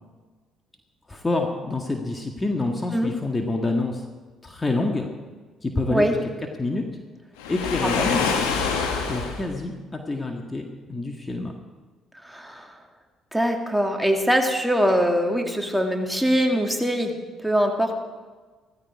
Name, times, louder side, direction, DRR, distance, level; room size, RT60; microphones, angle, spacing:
voice 1, 1.1-4.1 4.4-5.1 5.6-6.2 6.6-6.9 7.5-8.3 9.1-11.5, left 2 dB, 25° left, 3 dB, 1.9 m, -27 dB
Waves surf, 7.4-9.5, left 5 dB, 85° left, 1.9 m, -25 dB
voice 2, 7.8-8.1 12.1-12.8 13.3-17.1 17.4-17.9, equal, ahead, 2 dB, 2.5 m, -23 dB
16.0 x 14.5 x 4.8 m, 1.4 s
hypercardioid pair, 50°, 0 cm